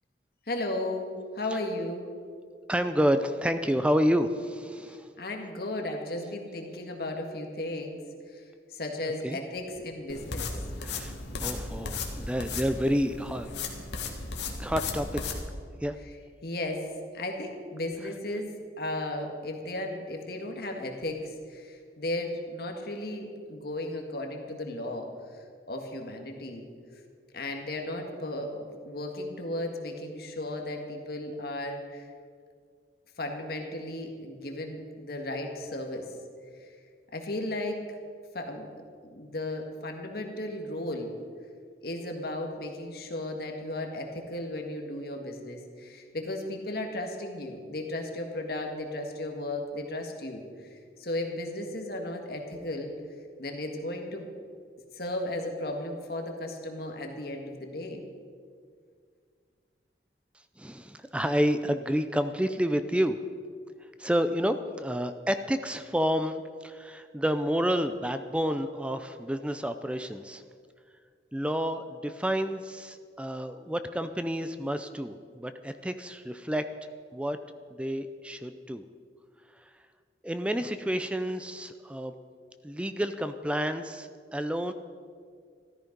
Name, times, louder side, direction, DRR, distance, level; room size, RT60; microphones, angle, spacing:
voice 1, 0.5-2.1 5.2-8.0 8.3-8.4 8.7-10.5 11.8-11.9 16.4-16.8 17.1-18.5 18.8-25.1 25.7-26.7 27.3-32.1 33.2-36.0 36.6-36.7 37.1-37.8 38.3-38.7 39.0-41.1 41.8-50.4 51.0-52.9 53.4-54.3 54.9-58.0, left 1 dB, 60° left, 3 dB, 1.8 m, -35 dB
voice 2, 2.7-5.1 9.2-9.4 10.8-11.1 11.4-13.5 14.6-15.4 15.8-16.0 60.6-63.2 64.0-70.4 71.3-76.6 77.1-77.4 77.7-78.8 80.2-82.1 82.6-84.7, equal, 5° right, 9 dB, 0.5 m, -29 dB
sound 1, 10.1-15.4, left 3 dB, 80° left, 1.8 m, -35 dB
14.0 x 13.5 x 5.2 m, 2.1 s
head